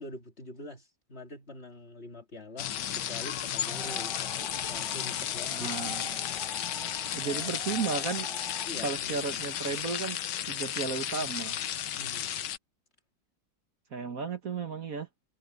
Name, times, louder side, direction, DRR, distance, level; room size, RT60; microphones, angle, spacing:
voice 1, 0.0-4.1 4.7-6.0 8.7-9.2 12.0-12.3, left 1 dB, 35° left, 2.3 m, -45 dB
sound 1, 2.6-12.6, left 10 dB, 70° left, 1.5 m, -34 dB
sound 2, 3.6-8.7, equal, ahead, 6.6 m, -45 dB
voice 2, 5.5-6.1 7.1-8.3 8.8-10.2 10.5-11.6 13.9-15.1, right 5 dB, 50° right, 1.8 m, -34 dB
omnidirectional pair, 2.0 m